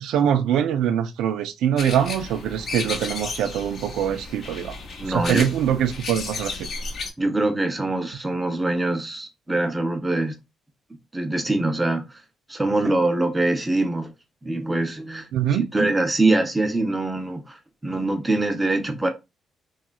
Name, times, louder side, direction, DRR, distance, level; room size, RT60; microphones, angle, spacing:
voice 1, 0.0-4.8 5.0-6.5 15.3-15.6, right 9 dB, 85° right, 0.3 m, -23 dB
sound 1, 1.8-7.1, left 3 dB, 55° left, 0.7 m, -33 dB
voice 2, 5.0-5.5 7.2-10.4 11.1-12.0 12.5-14.1 14.4-19.1, right 2 dB, 15° right, 0.6 m, -24 dB
2.9 x 2.3 x 2.3 m
cardioid pair, 90°, 0 cm